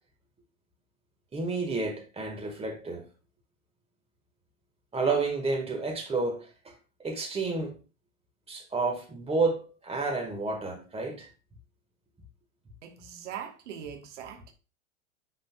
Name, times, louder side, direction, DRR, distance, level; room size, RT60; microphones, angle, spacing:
voice 1, 1.3-3.1 4.9-6.8 7.0-7.8 8.5-11.3, right 3 dB, 15° right, 1.7 m, -30 dB
voice 2, 12.8-14.5, right 9 dB, 65° right, 1.4 m, -41 dB
10.0 x 4.1 x 2.3 m
hypercardioid pair, 100°, 39 cm